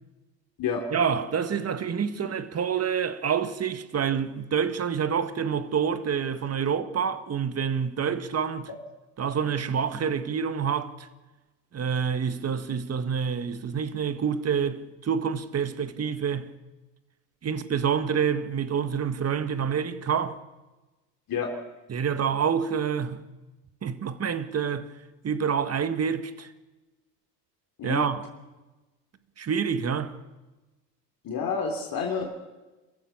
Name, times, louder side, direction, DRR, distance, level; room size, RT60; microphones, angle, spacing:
voice 1, 0.9-8.7 9.2-11.1 11.7-16.5 17.4-20.4 21.9-23.2 23.8-24.9 25.2-26.5 27.8-28.2 29.4-30.2, right 7 dB, 30° right, 1.7 m, -27 dB
voice 2, 31.2-32.4, left 6 dB, 45° left, 3.4 m, -29 dB
27.5 x 15.0 x 7.2 m
hypercardioid pair, 75°, 49 cm